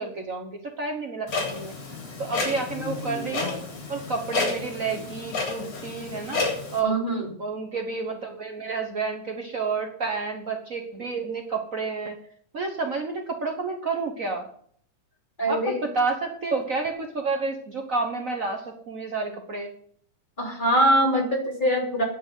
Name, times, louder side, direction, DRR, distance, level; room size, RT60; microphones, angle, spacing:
voice 1, 0.0-1.7 2.2-3.6 3.9-6.4 6.7-7.0 7.4-12.2 12.5-14.5 15.5-19.7, right 4 dB, 75° right, 3 dB, 0.7 m, -30 dB
Clock, 1.3-6.8, left 4 dB, 55° left, 4.6 m, -31 dB
voice 2, 6.8-7.3 15.4-15.9 20.4-22.0, right 1 dB, 15° left, -1 dB, 3.1 m, -23 dB
9.6 x 9.0 x 9.1 m, 0.62 s
omnidirectional pair, 3.4 m